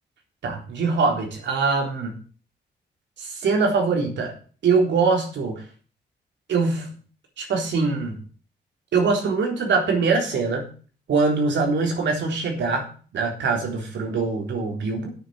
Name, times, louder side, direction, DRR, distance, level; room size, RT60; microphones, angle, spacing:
voice 1, 0.4-2.1 3.2-4.3 4.6-5.6 6.5-6.9 7.4-8.2 8.9-10.7 11.1-12.9 13.1-15.1, right 4 dB, 80° right, 2 dB, 3.8 m, -23 dB
9.0 x 6.9 x 8.2 m, 0.40 s
cardioid pair, 100°, 18 cm